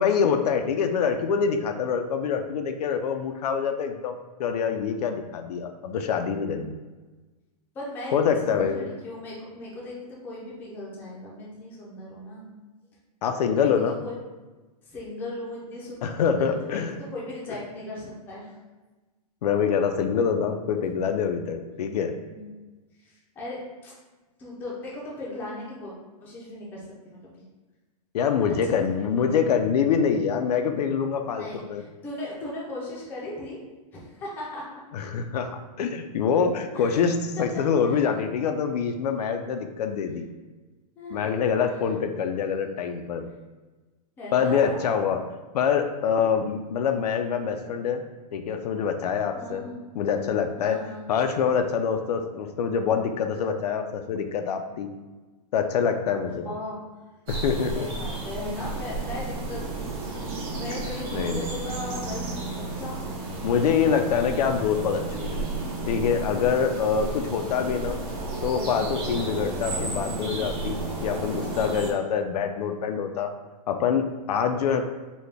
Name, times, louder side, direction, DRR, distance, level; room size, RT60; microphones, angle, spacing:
voice 1, 0.0-6.8 8.1-8.8 13.2-14.0 16.0-16.9 19.4-22.1 28.1-31.8 34.9-40.3 41.1-43.3 44.3-45.2 45.5-48.0 48.3-49.7 49.9-50.8 51.1-54.9 55.5-56.5 57.3-57.9 60.9-61.5 63.4-65.5 65.9-68.0 68.4-73.3 73.7-74.8, left 6 dB, 75° left, 6 dB, 0.4 m, -25 dB
voice 2, 7.7-12.5 13.4-13.7 14.0-14.2 14.8-16.0 16.2-18.5 22.3-22.5 23.0-23.9 24.4-25.9 26.2-27.4 28.6-29.4 31.3-33.6 33.9-34.7 36.7-37.0 37.4-38.0 41.0-41.3 44.2-44.9 49.3-50.2 50.6-51.1 56.4-56.8 57.6-63.1, left 1 dB, 10° left, -5 dB, 0.5 m, -38 dB
sound 1, 57.3-71.9, right 3 dB, 35° right, 0.8 m, -32 dB
4.1 x 2.2 x 3.3 m, 1.2 s
supercardioid pair, 170°, 20 cm